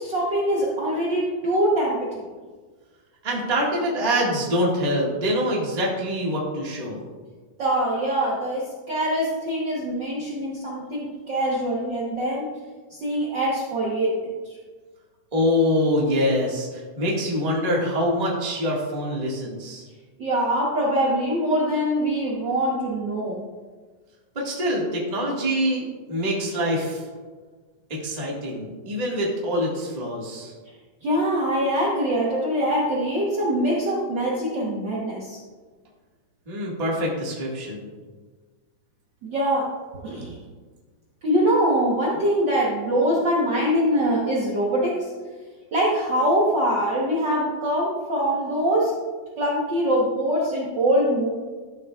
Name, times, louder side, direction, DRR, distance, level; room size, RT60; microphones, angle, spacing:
voice 1, 0.0-2.3 7.6-12.5 12.9-14.2 14.4-14.5 20.2-23.4 31.0-35.4 39.2-39.7 40.0-40.4 41.2-45.1 45.7-49.0 49.4-51.3, equal, 80° right, -4 dB, 1.0 m, -23 dB
voice 2, 3.2-7.0 15.3-19.8 24.3-27.0 27.9-30.5 36.5-37.9, equal, 25° right, -4 dB, 0.8 m, -25 dB
13.0 x 7.1 x 2.4 m, 1.4 s
omnidirectional pair, 3.8 m